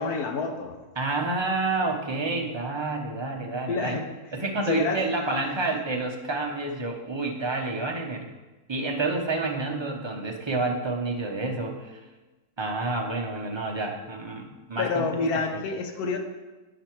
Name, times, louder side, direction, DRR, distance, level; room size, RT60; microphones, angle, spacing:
voice 1, 0.0-0.8 3.7-4.1 4.7-5.0 14.8-16.2, left 3 dB, 85° left, 5 dB, 1.4 m, -28 dB
voice 2, 1.0-4.0 4.3-8.3 8.7-12.0 12.6-15.1, right 2 dB, 30° right, 0 dB, 0.5 m, -29 dB
8.8 x 5.8 x 4.5 m, 1.2 s
omnidirectional pair, 1.6 m